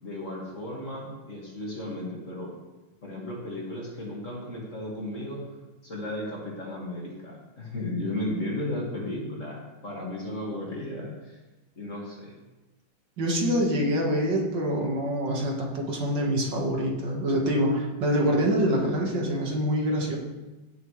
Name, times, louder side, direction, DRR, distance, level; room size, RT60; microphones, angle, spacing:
voice 1, 0.0-2.5 3.0-5.4 5.8-11.4 11.8-12.4, left 1 dB, 40° left, -3 dB, 2.4 m, -34 dB
voice 2, 13.2-20.2, equal, 65° right, -1 dB, 2.3 m, -25 dB
17.0 x 7.0 x 3.3 m, 1.1 s
omnidirectional pair, 2.1 m